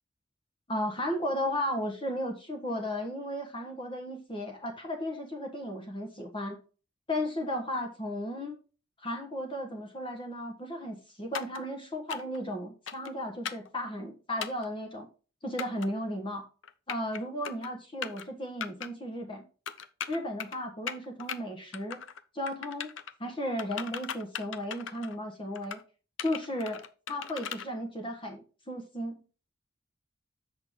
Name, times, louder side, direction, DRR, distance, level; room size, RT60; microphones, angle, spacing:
voice 1, 0.7-6.6 7.1-8.5 9.0-15.1 15.4-16.4 16.9-19.4 20.1-22.0 22.3-22.9 23.2-25.8 26.2-29.1, equal, 25° left, 3 dB, 1.3 m, -35 dB
sound 1, 11.3-11.6 12.1-12.4 12.9-13.1 13.4-13.7 14.4-14.7 15.6-15.9 16.6-17.2 17.4-17.7 18.0-18.2 18.6-18.9 19.7-20.6 20.9-21.4 21.7-22.2 22.5-23.1 23.6-25.2 25.5-25.8 26.2-27.7, left 7 dB, 80° left, 0.7 m, -38 dB
7.8 x 6.4 x 3.7 m, 0.35 s
head